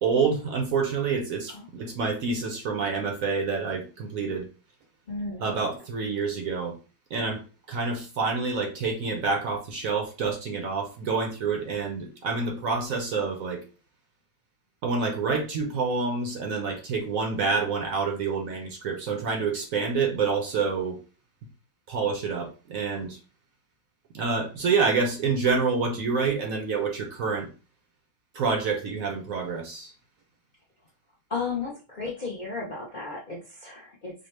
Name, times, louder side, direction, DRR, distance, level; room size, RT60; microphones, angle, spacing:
voice 1, 0.0-4.5 5.4-6.8 7.1-13.6 14.8-21.0 21.9-23.2 24.1-27.5 28.3-29.9, right 4 dB, 65° right, 3 dB, 1.0 m, -27 dB
voice 2, 5.1-5.4 31.3-34.1, left 4 dB, 45° left, -2 dB, 0.5 m, -34 dB
5.1 x 2.1 x 3.2 m, 0.34 s
omnidirectional pair, 1.8 m